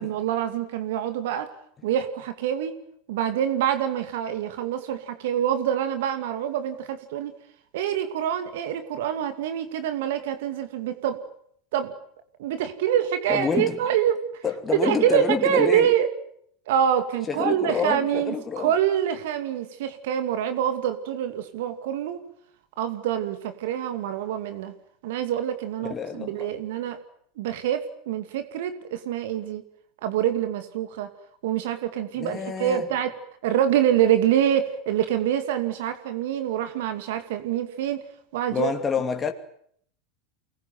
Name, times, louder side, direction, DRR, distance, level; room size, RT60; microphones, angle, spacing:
voice 1, 0.0-1.5 1.8-2.8 3.1-7.3 7.7-11.2 11.7-11.9 12.4-14.2 14.7-16.1 16.7-22.2 22.8-24.7 25.0-27.0 27.4-29.6 30.0-31.1 31.4-33.1 33.4-38.0 38.3-38.7, right 10 dB, 70° right, 2.4 m, -25 dB
voice 2, 13.3-13.8 14.4-15.9 17.3-18.7 25.9-26.5 32.2-32.9 38.5-39.3, left 6 dB, 25° left, 2.6 m, -28 dB
24.5 x 20.5 x 9.5 m
hypercardioid pair, 90°, 0 cm